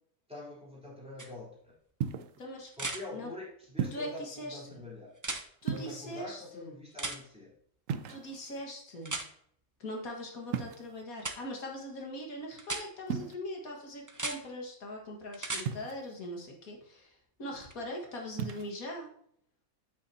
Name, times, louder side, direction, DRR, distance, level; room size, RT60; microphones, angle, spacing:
voice 1, 0.3-1.7 2.8-5.2 5.7-7.5, left 2 dB, 5° right, -6 dB, 3.6 m, -45 dB
sound 1, 1.2-1.3 2.7-3.0 5.2-5.4 7.0-7.2 9.0-9.3 11.2-11.4 12.6-12.8 14.1-14.4 15.3-15.7 17.7-17.8, right 2 dB, 20° right, 0.5 m, -36 dB
sound 2, 2.0-2.4 3.8-4.2 5.6-6.3 7.9-8.6 10.5-11.0 13.1-13.3 15.7-16.2 18.3-18.7, right 7 dB, 70° right, 1.0 m, -36 dB
voice 2, 2.4-2.7 3.1-3.3 3.9-4.8 5.6-6.7 8.1-9.2 9.8-19.1, left 1 dB, 90° left, 1 dB, 2.2 m, -41 dB
9.1 x 8.4 x 2.8 m, 0.65 s
omnidirectional pair, 1.5 m